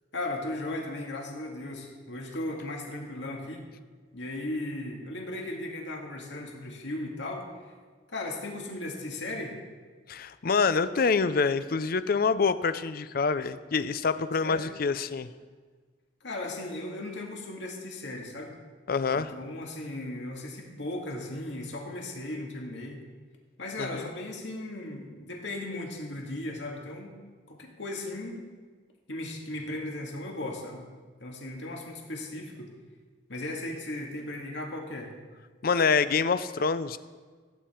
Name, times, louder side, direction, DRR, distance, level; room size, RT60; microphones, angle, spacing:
voice 1, 0.1-3.7 4.1-7.5 8.1-9.6 14.4-14.7 16.2-18.5 19.1-23.0 23.6-27.2 27.5-28.4 29.1-30.8 31.2-32.7 33.3-35.1, left 1 dB, 70° left, 0 dB, 2.2 m, -36 dB
voice 2, 10.1-15.3 18.9-19.3 23.8-24.1 35.6-37.0, left 5 dB, 55° left, 14 dB, 0.5 m, -26 dB
16.0 x 9.2 x 4.5 m, 1.5 s
head